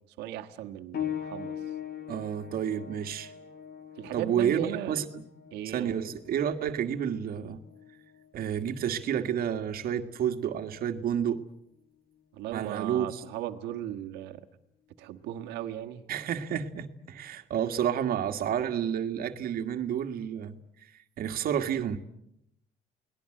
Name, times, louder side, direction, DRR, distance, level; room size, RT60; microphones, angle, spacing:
voice 1, 0.2-1.6 4.0-5.0 5.5-6.0 12.3-14.5 15.0-16.1, right 12 dB, 90° right, 5 dB, 1.6 m, -37 dB
sound 1, 0.9-11.2 12.1-12.2 13.0-13.1, left 9 dB, 65° left, 2.6 m, -42 dB
voice 2, 2.1-3.3 4.1-5.2 5.7-7.6 8.3-11.4 12.5-13.2 16.1-20.6 21.2-22.0, right 9 dB, 60° right, 7 dB, 1.9 m, -30 dB
29.5 x 19.5 x 7.8 m, 0.77 s
cardioid pair, 110°, 17 cm